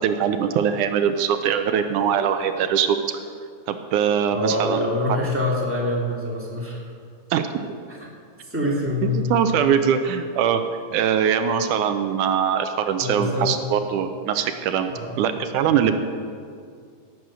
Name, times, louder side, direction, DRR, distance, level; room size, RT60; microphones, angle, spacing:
voice 1, 0.0-3.0 3.7-4.9 7.3-7.7 9.0-10.6 10.9-15.9, right 8 dB, 75° right, 8 dB, 2.0 m, -22 dB
voice 2, 4.3-6.8 7.9-8.1 8.5-9.4 13.0-13.6 14.9-15.2 15.7-15.9, left 1 dB, 5° right, -3 dB, 1.6 m, -25 dB
17.0 x 7.9 x 6.2 m, 2.2 s
omnidirectional pair, 3.9 m